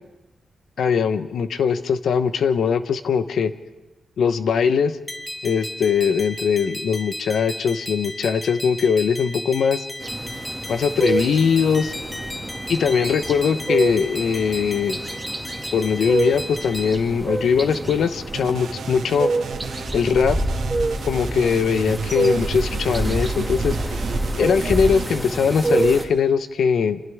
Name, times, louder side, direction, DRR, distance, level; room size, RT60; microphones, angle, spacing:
voice 1, 0.8-3.5 4.2-5.0 5.4-9.9 10.7-11.9 12.7-15.0 15.7-19.3 19.9-20.4 21.1-24.0 24.4-27.0, left 6 dB, 80° left, 11 dB, 0.9 m, -21 dB
sound 1, 5.1-16.9, left 1 dB, 15° left, 1.5 m, -34 dB
sound 2, 10.0-26.0, right 2 dB, 20° right, 2.3 m, -27 dB
sound 3, 18.3-25.2, right 7 dB, 90° right, 1.4 m, -34 dB
27.5 x 26.5 x 3.6 m, 1.1 s
cardioid pair, 90°, 0 cm